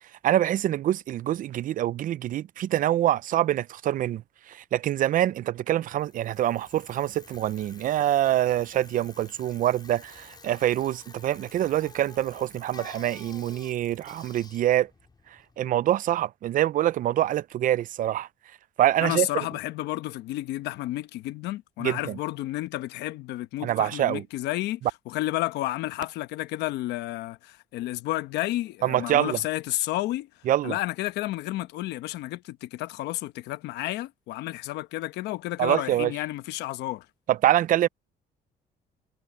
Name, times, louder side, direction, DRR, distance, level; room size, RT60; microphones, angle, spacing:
voice 1, 0.2-14.9 15.6-18.3 18.8-19.3 21.8-22.2 23.6-24.2 28.8-29.4 30.5-30.8 35.6-36.1 37.3-37.9, right 12 dB, 55° right, 0.5 m, -25 dB
Bicycle, 5.8-15.9, left 4 dB, 25° left, 4.8 m, -50 dB
voice 2, 19.0-24.8 25.1-30.3 30.6-37.1, left 16 dB, 85° left, 1.0 m, -31 dB
cardioid pair, 110°, 17 cm